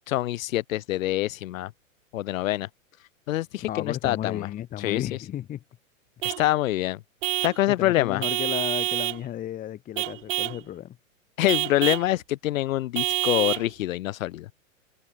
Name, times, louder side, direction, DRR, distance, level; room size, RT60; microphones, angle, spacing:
voice 1, 0.1-1.7 2.1-2.7 3.3-4.5 4.8-5.0 6.2-7.0 7.4-8.2 11.4-14.5, left 15 dB, 75° left, 0.6 m, -25 dB
voice 2, 3.7-5.6 7.7-11.0, left 12 dB, 20° left, 1.6 m, -33 dB
Vehicle horn car horn honking / Truck, 6.2-6.5 7.2-7.6 8.2-9.2 10.0-10.6 11.5-12.1 13.0-13.7, right 16 dB, 65° right, 0.6 m, -27 dB
hypercardioid pair, 140°, 40 cm